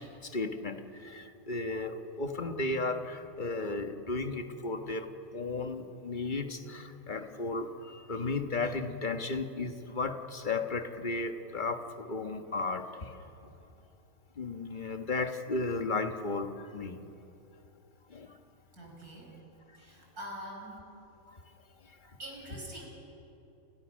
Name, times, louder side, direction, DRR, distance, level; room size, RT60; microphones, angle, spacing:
voice 1, 0.0-5.1 5.3-13.1 14.4-17.0 18.1-18.4 21.3-21.4, left 3 dB, 35° left, 6 dB, 1.5 m, -34 dB
voice 2, 18.7-19.4 19.7-20.8 22.2-22.9, equal, 80° right, 0 dB, 6.5 m, -44 dB
29.5 x 29.0 x 6.4 m, 2.9 s
omnidirectional pair, 1.6 m